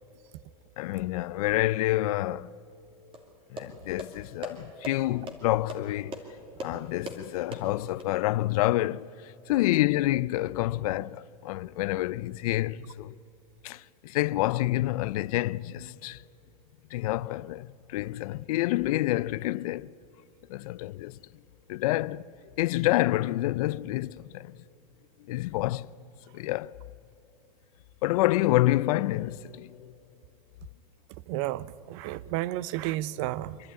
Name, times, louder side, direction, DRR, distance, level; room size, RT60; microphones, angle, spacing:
voice 1, 0.8-2.5 3.5-6.2 6.6-13.2 13.6-16.2 16.9-19.9 20.5-21.2 21.7-22.2 22.6-24.6 25.3-25.9 26.3-26.8 28.0-29.8, left 17 dB, 70° left, 0.4 m, -28 dB
sound 1, 3.1-8.1, right 1 dB, 30° right, 2.7 m, -42 dB
voice 2, 31.3-33.6, right 15 dB, 55° right, 0.6 m, -32 dB
25.5 x 11.5 x 9.8 m
hypercardioid pair, 115°, 19 cm